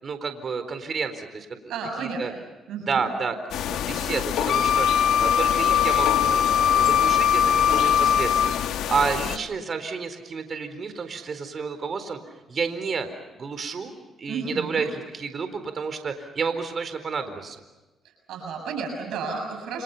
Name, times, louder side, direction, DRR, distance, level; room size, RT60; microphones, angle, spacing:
voice 1, 0.0-2.3 2.8-3.4 3.6-12.2 12.5-17.6, right 5 dB, 45° right, 9 dB, 4.2 m, -30 dB
voice 2, 1.7-2.4 2.7-3.0 14.3-14.8 18.3-19.8, right 5 dB, 80° right, 4 dB, 6.9 m, -32 dB
sound 1, 3.5-9.4, left 10 dB, 85° left, 1.4 m, -28 dB
Wind instrument woodwind instrument, 4.5-8.6, left 8 dB, 65° left, 2.0 m, -21 dB
30.0 x 29.0 x 5.6 m, 1.1 s
cardioid pair, 90°, 0 cm